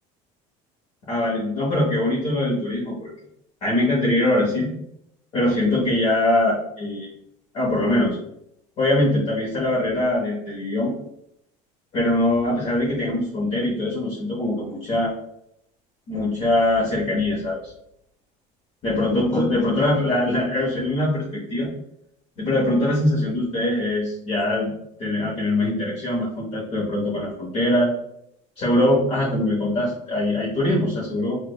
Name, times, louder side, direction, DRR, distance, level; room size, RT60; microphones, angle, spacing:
voice 1, 1.1-3.1 3.6-4.7 5.3-7.1 7.5-8.2 8.8-10.9 11.9-15.1 16.1-17.6 18.8-21.7 22.4-24.7 25.0-27.9 28.6-31.4, left 1 dB, 40° left, -5 dB, 1.0 m, -22 dB
4.6 x 2.2 x 2.2 m, 0.73 s
cardioid pair, 155°, 15 cm